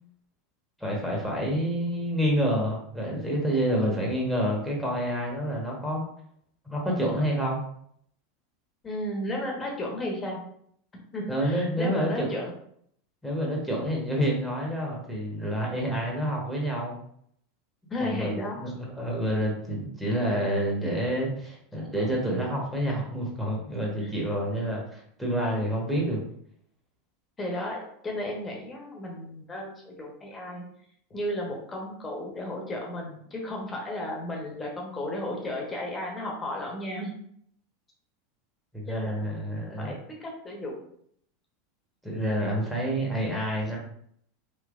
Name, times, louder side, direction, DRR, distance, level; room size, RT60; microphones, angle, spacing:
voice 1, 0.8-6.0 6.6-7.6 11.3-12.3 13.2-17.0 18.0-26.2 38.7-39.9 42.0-43.8, equal, 5° right, -3 dB, 1.2 m, -28 dB
voice 2, 8.8-10.4 10.9-12.5 17.9-18.7 22.0-22.2 24.0-24.1 27.4-27.8 28.0-30.6 31.1-37.1 38.9-40.8 43.7-43.8, left 1 dB, 20° left, -1 dB, 1.1 m, -34 dB
3.3 x 2.9 x 2.5 m, 0.67 s
hypercardioid pair, 95°, 0 cm